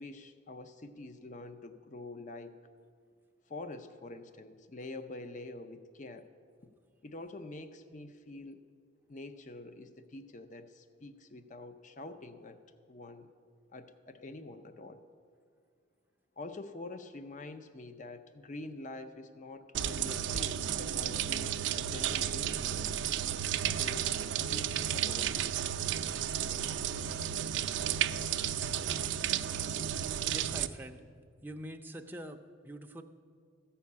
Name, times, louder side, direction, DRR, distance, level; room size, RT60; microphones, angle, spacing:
voice 1, 0.0-2.6 3.5-6.3 7.0-8.6 9.1-12.6 12.9-13.3 13.7-15.0 16.4-22.9 23.6-25.6, left 2 dB, 40° left, 10 dB, 0.5 m, -46 dB
sound 1, 19.7-30.7, right 10 dB, 65° right, 0.4 m, -33 dB
voice 2, 30.3-31.0 31.4-33.0, equal, 10° right, 4 dB, 0.5 m, -44 dB
14.5 x 5.7 x 8.4 m, 2.1 s
head